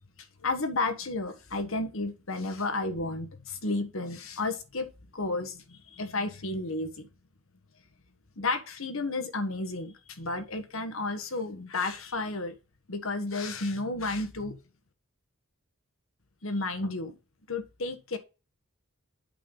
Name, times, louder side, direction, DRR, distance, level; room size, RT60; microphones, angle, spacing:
voice 1, 0.4-4.9 5.1-7.1 8.4-12.6 12.9-14.6 16.4-17.2 17.5-18.2, left 2 dB, 65° left, 1.3 m, -32 dB
8.5 x 5.3 x 3.9 m
head